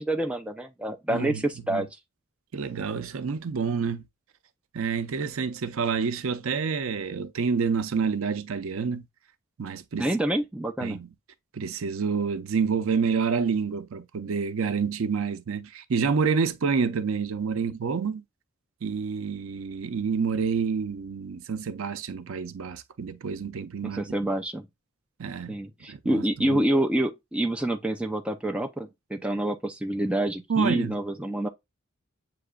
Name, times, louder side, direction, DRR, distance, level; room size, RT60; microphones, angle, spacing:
voice 1, 0.0-1.9 10.0-11.0 23.9-24.7 25.5-31.5, right 1 dB, 5° right, 0.3 m, -27 dB
voice 2, 1.1-1.8 2.5-4.0 4.7-9.1 9.6-10.1 10.8-11.1 11.5-18.2 18.8-24.1 25.2-25.5 25.9-26.6 30.5-31.0, right 5 dB, 75° right, 0.5 m, -28 dB
7.6 x 2.9 x 2.3 m
head